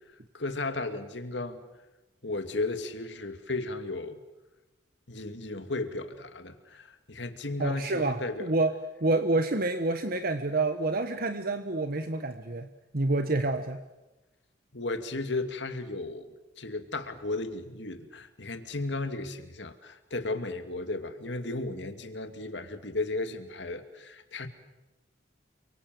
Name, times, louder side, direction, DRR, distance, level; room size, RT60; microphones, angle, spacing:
voice 1, 0.3-1.6 2.2-4.2 5.1-8.5 14.7-24.5, left 2 dB, 65° left, 8 dB, 2.5 m, -35 dB
voice 2, 7.6-13.8, right 2 dB, 50° right, 8 dB, 1.3 m, -28 dB
29.5 x 24.0 x 7.8 m, 1.1 s
head